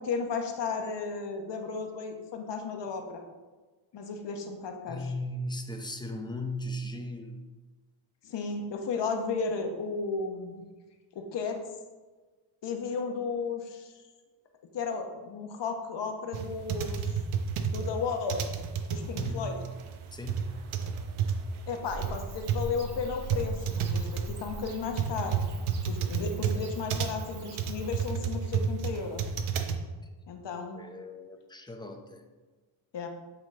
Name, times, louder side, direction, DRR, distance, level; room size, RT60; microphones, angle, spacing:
voice 1, 0.0-3.2 3.9-5.1 8.2-10.7 11.1-11.6 12.6-13.9 14.7-17.2 17.7-18.4 18.9-19.5 21.7-25.4 25.9-29.2 30.3-30.9 32.9-33.1, left 5 dB, 55° left, 4 dB, 1.0 m, -34 dB
voice 2, 4.9-7.4 19.2-19.6 20.1-20.5 30.7-32.2, left 1 dB, 10° left, 4 dB, 0.6 m, -37 dB
sound 1, 16.3-29.8, right 7 dB, 75° right, 0.8 m, -31 dB
Bird / Cricket, 21.8-28.1, right 2 dB, 50° right, 1.0 m, -44 dB
8.9 x 3.7 x 3.7 m, 1.3 s
cardioid pair, 105°, 50 cm